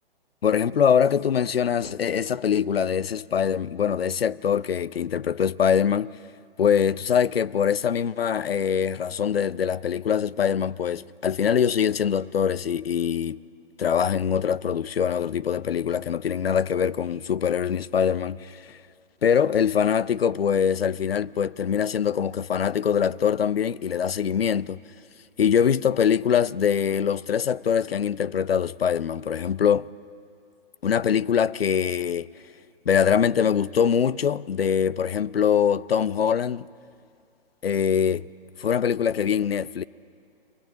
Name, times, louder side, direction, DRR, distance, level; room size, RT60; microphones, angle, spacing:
voice 1, 0.4-6.1 6.6-13.4 13.8-18.8 19.2-24.8 25.4-29.9 30.8-32.3 32.9-36.7 37.6-38.3 38.6-39.8, left 8 dB, 80° left, 0.6 m, -23 dB
23.5 x 18.5 x 9.0 m
figure-of-eight pair, 130°, 30 cm